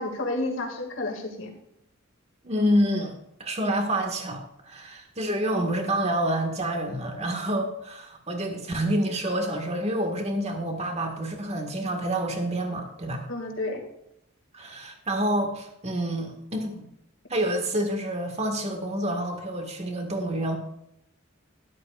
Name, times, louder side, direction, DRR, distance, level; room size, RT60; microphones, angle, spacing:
voice 1, 0.0-1.6 13.3-13.9, left 2 dB, 65° left, 2 dB, 2.3 m, -31 dB
voice 2, 2.4-3.1 3.4-13.2 14.5-16.9 17.3-20.6, right 1 dB, 30° right, 3 dB, 1.8 m, -28 dB
12.5 x 11.5 x 2.5 m, 0.80 s
head